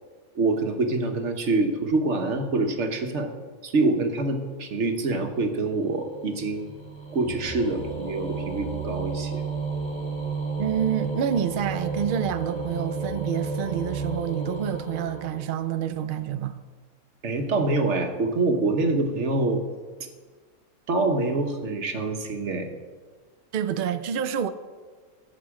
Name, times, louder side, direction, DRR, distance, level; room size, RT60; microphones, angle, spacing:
voice 1, 0.3-3.3 3.6-6.7 7.1-9.4 17.2-19.6 20.9-22.7, right 3 dB, 55° right, 5 dB, 1.3 m, -25 dB
sound 1, 5.0-15.9, right 4 dB, 5° left, 2.5 m, -33 dB
voice 2, 10.6-16.6 23.5-24.5, right 9 dB, 70° right, 10 dB, 0.4 m, -28 dB
14.5 x 6.2 x 4.8 m, 1.4 s
omnidirectional pair, 1.5 m